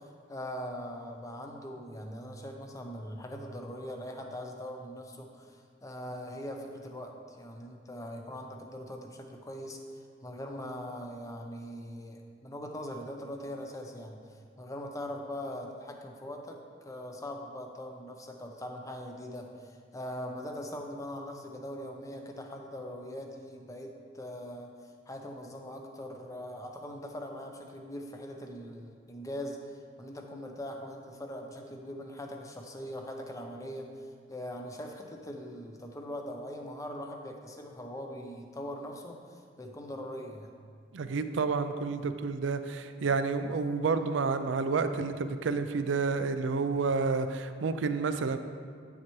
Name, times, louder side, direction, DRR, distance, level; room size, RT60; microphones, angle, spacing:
voice 1, 0.3-9.8 10.2-24.7 25.1-33.9 34.3-40.5, equal, 15° left, 2 dB, 0.7 m, -41 dB
voice 2, 40.9-48.4, right 4 dB, 70° right, 10 dB, 0.4 m, -30 dB
8.6 x 7.2 x 3.1 m, 2.1 s
head